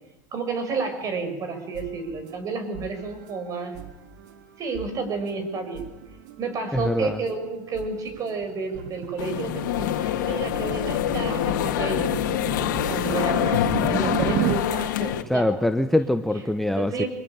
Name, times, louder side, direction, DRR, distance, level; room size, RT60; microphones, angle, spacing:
voice 1, 0.3-3.8 4.6-5.9 6.4-12.1 12.8-15.5 16.7-17.1, right 4 dB, 35° right, 8 dB, 6.5 m, -31 dB
sound 1, 1.4-13.5, right 8 dB, 70° right, 3.0 m, -46 dB
voice 2, 6.7-7.2 15.3-17.1, left 1 dB, ahead, 8 dB, 1.0 m, -23 dB
sound 2, 8.1-14.6, right 14 dB, 50° right, 1.2 m, -32 dB
sound 3, 9.2-15.2, left 12 dB, 75° left, 2.5 m, -25 dB
24.5 x 21.5 x 8.9 m, 1.0 s
supercardioid pair, 120°, 10 cm